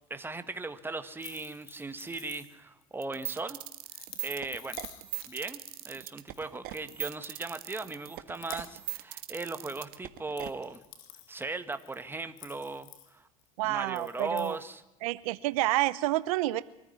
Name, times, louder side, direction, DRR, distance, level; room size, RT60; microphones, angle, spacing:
voice 1, 0.1-3.6 3.9-4.8 5.3-5.6 5.8-10.8 11.3-13.3 13.6-14.8, right 3 dB, 10° right, 10 dB, 1.7 m, -38 dB
sound 1, 1.2-2.8 3.2-7.1 7.4-8.0 8.3-8.9 9.2-9.9 10.2-13.5 13.9-14.6, left 12 dB, 70° left, 2.9 m, -51 dB
sound 2, 3.0-10.5, right 17 dB, 60° right, 1.6 m, -39 dB
voice 2, 13.6-14.6 15.0-16.6, right 17 dB, 75° right, 16 dB, 0.8 m, -29 dB
24.5 x 14.5 x 9.7 m, 0.90 s
supercardioid pair, 95°, 18 cm